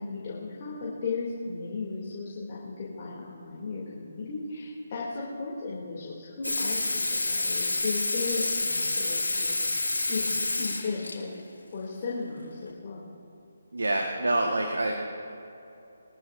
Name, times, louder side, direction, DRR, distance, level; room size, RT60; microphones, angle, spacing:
voice 1, 0.0-11.3 11.7-13.1, left 4 dB, 40° left, -5 dB, 2.7 m, -35 dB
Water tap faucet / Sink (filling or washing), 6.4-11.2 12.7-12.8, left 2 dB, 90° left, 3.5 m, -28 dB
voice 2, 13.7-14.9, right 2 dB, 80° right, 1 dB, 1.4 m, -26 dB
22.5 x 14.5 x 2.6 m, 2.8 s
figure-of-eight pair, 150°, 0 cm